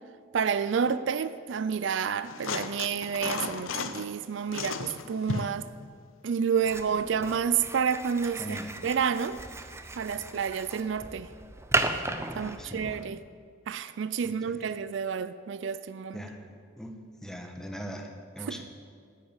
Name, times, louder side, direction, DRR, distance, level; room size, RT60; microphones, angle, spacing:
voice 1, 0.3-5.7 6.2-8.6 8.8-9.4 10.0-11.3 12.3-13.2 13.7-16.2, right 7 dB, 65° right, 14 dB, 0.4 m, -29 dB
sound 1, 2.2-4.1 4.5-5.6 7.2-7.3, left 5 dB, 85° left, 0.7 m, -34 dB
sound 2, 6.7-13.0, right 2 dB, 15° right, 0.6 m, -35 dB
voice 2, 8.4-8.8 10.1-10.3 12.3-13.0 14.2-14.6 16.1-16.5 16.8-18.6, equal, 5° left, 4 dB, 1.1 m, -41 dB
10.0 x 9.2 x 8.8 m, 2.2 s
head